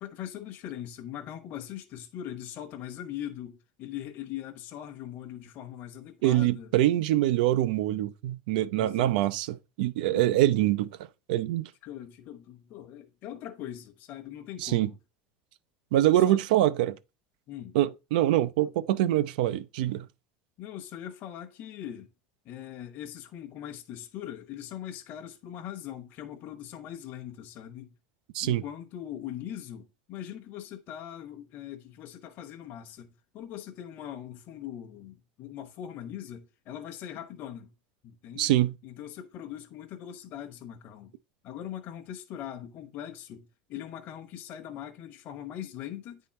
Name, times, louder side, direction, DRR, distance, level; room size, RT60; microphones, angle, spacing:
voice 1, 0.0-6.7 8.7-9.2 10.1-10.4 11.8-15.0 16.2-16.4 17.5-17.8 20.6-22.1 22.4-27.9 28.4-37.7 38.0-38.5 38.8-41.1 41.4-46.3, left 11 dB, 40° left, 0.9 m, -41 dB
voice 2, 6.2-10.9 11.3-11.7 14.6-14.9 15.9-17.0 17.7-20.1 28.3-28.6 38.4-38.8, right 14 dB, 75° right, 0.5 m, -24 dB
9.3 x 3.8 x 4.2 m
supercardioid pair, 160°, 5 cm